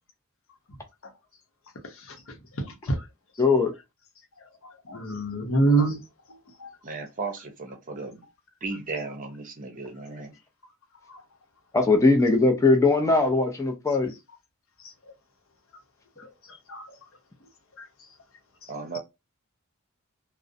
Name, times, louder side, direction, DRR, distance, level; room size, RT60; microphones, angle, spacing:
voice 1, 2.6-3.0 4.9-6.0 6.6-6.7 11.1-11.2 16.2-16.3 16.7-16.8, right 2 dB, 65° left, 0.7 m, -25 dB
voice 2, 3.4-3.7 11.7-14.1, left 3 dB, 15° left, 0.4 m, -20 dB
voice 3, 6.8-8.2 8.6-10.3 18.7-19.0, right 3 dB, 40° right, 0.6 m, -35 dB
2.4 x 2.0 x 2.5 m
head